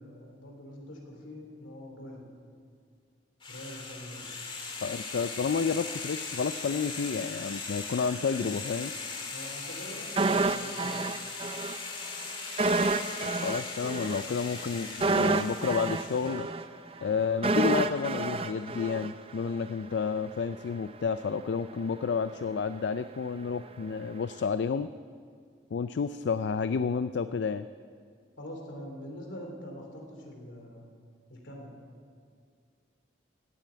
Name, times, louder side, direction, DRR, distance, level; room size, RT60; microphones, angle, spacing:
voice 1, 0.0-2.3 3.5-4.3 9.3-11.2 28.4-30.9 31.3-31.8, equal, 85° left, 1 dB, 3.3 m, -44 dB
sound 1, 3.4-16.5, left 4 dB, 25° left, 1.8 m, -39 dB
voice 2, 4.8-8.9 13.4-16.5 17.0-24.9 25.7-27.6, left 5 dB, 70° left, 12 dB, 0.4 m, -30 dB
sound 2, 10.2-11.8 12.1-12.2 12.6-19.7 20.0-20.1, right 3 dB, 30° right, 0.5 m, -29 dB
16.0 x 9.0 x 9.1 m, 2.2 s
head